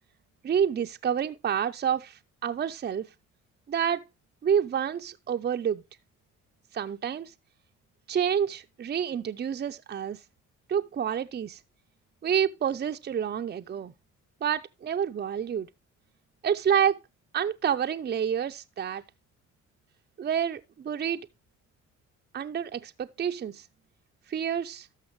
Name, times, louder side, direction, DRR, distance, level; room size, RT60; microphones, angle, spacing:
voice 1, 0.4-3.1 3.7-4.0 4.4-5.8 6.7-7.3 8.1-10.2 10.7-11.6 12.2-13.9 14.4-15.7 16.4-17.0 17.3-19.0 20.2-21.3 22.3-23.6 24.3-24.9, right 8 dB, 35° right, 0.5 m, -28 dB
13.0 x 5.8 x 3.1 m
cardioid pair, 90°, 30 cm